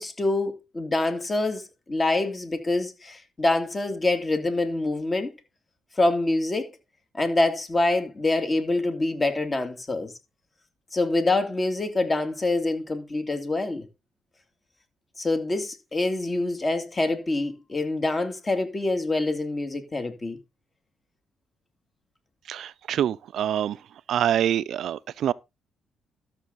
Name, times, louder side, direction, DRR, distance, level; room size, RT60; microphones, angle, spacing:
voice 1, 0.0-1.6 1.9-5.3 6.0-6.7 7.1-10.1 10.9-13.8 15.2-20.4, left 2 dB, 30° left, 2.8 m, -25 dB
voice 2, 22.5-23.8 24.1-25.3, right 10 dB, 70° right, 0.5 m, -25 dB
13.0 x 7.0 x 4.1 m
cardioid pair, 90°, 0 cm